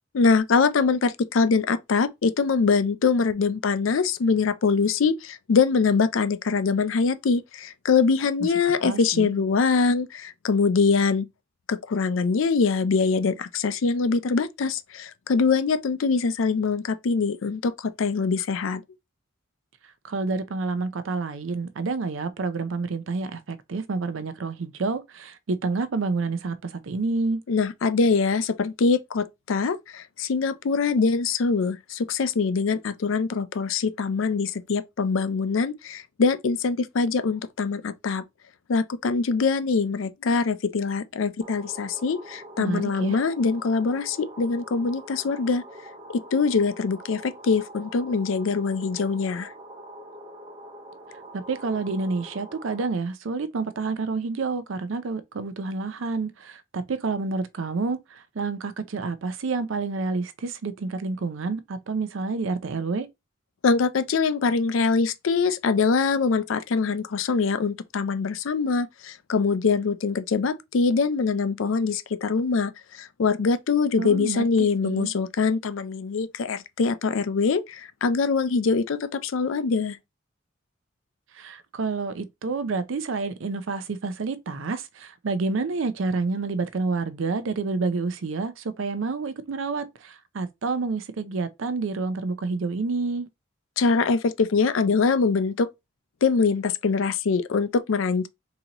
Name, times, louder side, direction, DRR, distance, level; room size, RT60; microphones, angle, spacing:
voice 1, 0.1-11.3 11.7-18.8 27.5-38.2 38.7-45.6 46.1-49.5 63.6-80.0 93.8-95.7 96.2-98.3, left 4 dB, 80° left, 0.5 m, -23 dB
voice 2, 8.6-9.4 20.0-27.4 42.6-43.2 51.3-63.1 74.0-75.1 81.3-93.3, right 4 dB, 75° right, 0.5 m, -29 dB
sound 1, 41.4-52.9, right 1 dB, 25° right, 0.6 m, -44 dB
3.9 x 2.8 x 2.9 m
head